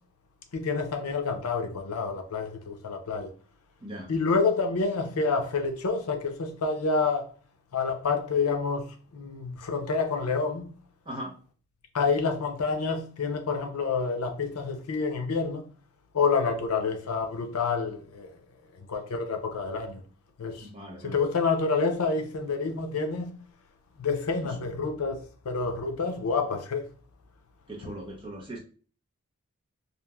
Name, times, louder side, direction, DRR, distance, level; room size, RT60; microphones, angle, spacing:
voice 1, 0.5-3.3 4.1-7.3 7.7-10.7 11.9-15.6 16.1-18.3 18.9-20.0 20.4-20.7 21.0-23.3 24.0-26.9, left 4 dB, 85° left, 0.5 m, -28 dB
voice 2, 3.8-4.1 11.0-11.3 20.6-21.2 24.4-24.7 27.7-28.6, right 1 dB, 20° right, 0.7 m, -40 dB
3.0 x 2.4 x 2.2 m
head